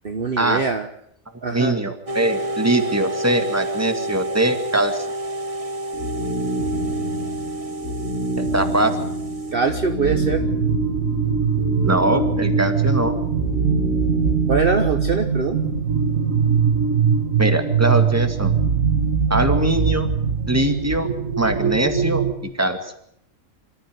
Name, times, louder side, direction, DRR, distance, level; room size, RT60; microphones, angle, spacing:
voice 1, 0.0-0.9 1.4-1.7 9.5-10.4 14.5-15.6, right 5 dB, 45° right, 7 dB, 1.3 m, -22 dB
voice 2, 1.5-5.1 8.4-9.0 11.8-13.1 17.4-18.5 19.3-20.1 20.5-21.1 21.4-22.9, right 1 dB, 10° right, 7 dB, 2.1 m, -22 dB
sound 1, 2.1-9.5, right 1 dB, 25° right, 1.4 m, -30 dB
sound 2, 5.9-15.2, right 1 dB, 85° left, 3.8 m, -27 dB
sound 3, 10.0-22.3, right 6 dB, 75° right, 2.2 m, -21 dB
26.5 x 14.0 x 9.4 m, 0.73 s
omnidirectional pair, 1.4 m